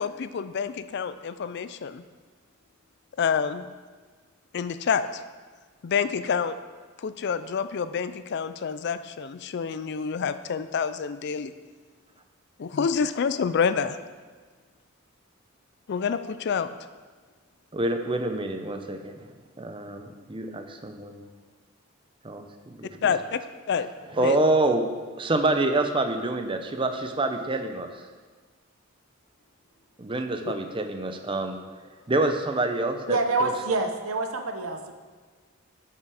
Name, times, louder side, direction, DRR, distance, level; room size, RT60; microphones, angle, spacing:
voice 1, 0.0-2.0 3.2-3.7 4.5-5.2 5.8-6.6 7.0-11.5 12.6-14.0 15.9-16.7 23.0-23.4 23.7-23.9 24.2-24.4, left 6 dB, 55° left, 13 dB, 0.4 m, -27 dB
voice 2, 17.7-21.2 22.2-23.2 24.1-24.9 25.2-28.0 30.0-31.6 32.1-33.5, right 2 dB, 25° right, 6 dB, 0.6 m, -27 dB
voice 3, 33.1-34.9, right 3 dB, 85° right, 6 dB, 0.9 m, -26 dB
9.2 x 6.0 x 4.9 m, 1.5 s
head